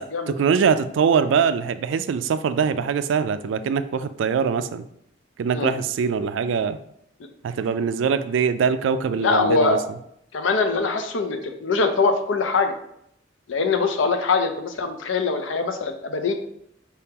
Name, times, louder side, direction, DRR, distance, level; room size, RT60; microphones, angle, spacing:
voice 1, 0.0-4.8 5.4-6.8 7.4-9.8, right 6 dB, 85° right, 13 dB, 0.3 m, -23 dB
voice 2, 9.2-9.8 10.3-12.7 13.5-16.3, left 4 dB, 90° left, 7 dB, 0.6 m, -22 dB
4.4 x 3.6 x 2.8 m, 0.73 s
head